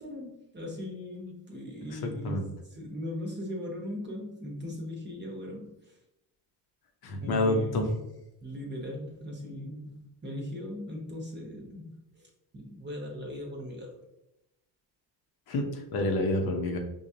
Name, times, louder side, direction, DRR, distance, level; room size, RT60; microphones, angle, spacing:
voice 1, 0.0-2.4 2.7-6.0 7.2-8.0 8.4-13.9, left 1 dB, 25° right, 0 dB, 1.0 m, -39 dB
voice 2, 1.9-2.4 7.0-7.9 15.5-16.8, left 2 dB, 55° left, 3 dB, 0.9 m, -28 dB
5.3 x 2.3 x 2.7 m, 0.89 s
supercardioid pair, 80°, 44 cm